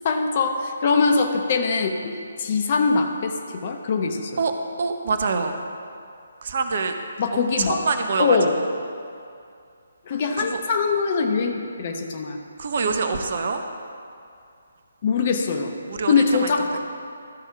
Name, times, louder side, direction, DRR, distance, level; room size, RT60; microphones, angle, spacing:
voice 1, 0.0-4.4 7.2-7.8 8.2-8.5 10.1-12.4 15.0-15.7 16.1-16.8, left 4 dB, 35° left, 4 dB, 0.9 m, -22 dB
voice 2, 4.8-5.6 6.4-7.0 7.3-8.7 10.1-10.6 12.6-13.6 15.9-16.8, right 4 dB, 45° right, 6 dB, 0.8 m, -26 dB
13.0 x 5.5 x 6.0 m, 2.4 s
figure-of-eight pair, 140°, 0 cm